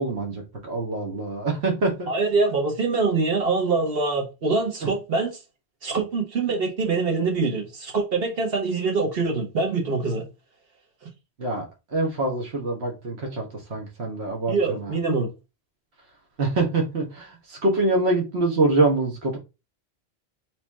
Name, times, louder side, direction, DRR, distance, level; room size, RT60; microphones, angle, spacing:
voice 1, 0.0-2.1 11.4-11.6 11.9-13.4 13.7-14.9 16.4-19.4, right 2 dB, 80° right, 1.5 m, -25 dB
voice 2, 2.1-5.4 5.8-10.2 14.5-15.3, right 4 dB, 65° right, 1.6 m, -24 dB
4.0 x 3.2 x 4.1 m
omnidirectional pair, 1.1 m